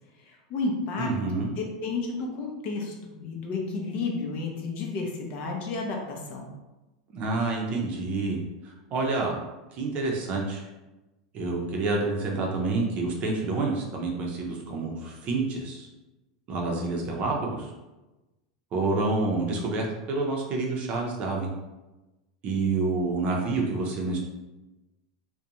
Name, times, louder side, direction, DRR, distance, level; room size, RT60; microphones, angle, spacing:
voice 1, 0.2-6.5, left 3 dB, 45° left, 0 dB, 0.6 m, -32 dB
voice 2, 1.0-1.5 7.1-8.4 8.6-9.4 9.7-10.7 11.3-15.9 16.5-17.7 18.7-21.5 22.4-24.2, right 3 dB, 40° right, -1 dB, 0.6 m, -28 dB
2.5 x 2.2 x 2.9 m, 1.1 s
hypercardioid pair, 120°, 4 cm